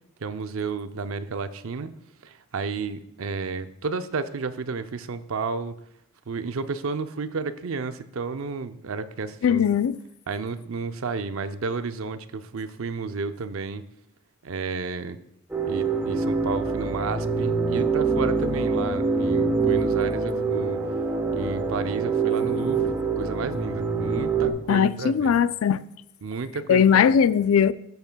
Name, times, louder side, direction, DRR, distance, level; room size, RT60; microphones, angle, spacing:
voice 1, 0.2-1.9 2.2-5.8 6.3-9.6 10.3-13.8 14.4-15.2 15.7-20.8 21.3-25.4 26.2-27.1, right 4 dB, 70° right, 0.5 m, -32 dB
voice 2, 9.4-10.0 24.7-25.8 26.7-27.7, left 7 dB, 70° left, 0.3 m, -19 dB
sound 1, 15.5-24.5, right 4 dB, 10° right, 1.0 m, -25 dB
12.0 x 8.0 x 2.3 m
head